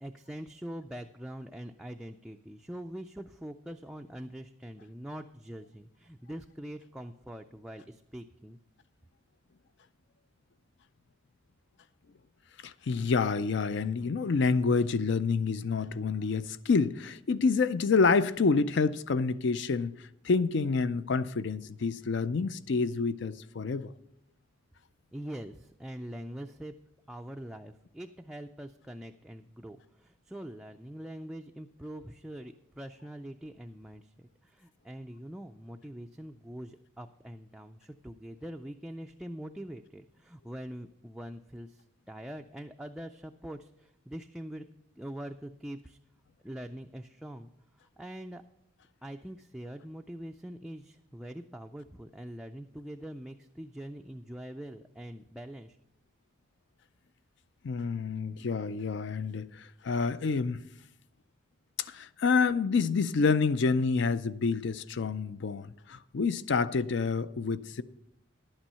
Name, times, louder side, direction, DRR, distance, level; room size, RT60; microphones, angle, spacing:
voice 1, 0.0-8.6 25.1-26.7 27.1-44.7 45.0-46.0 46.4-47.5 48.0-48.4 49.0-55.8, equal, 5° right, 0.3 m, -43 dB
voice 2, 12.6-19.9 20.2-23.9 57.6-60.6 61.9-67.8, left 4 dB, 60° left, 0.5 m, -28 dB
11.0 x 8.9 x 5.5 m
head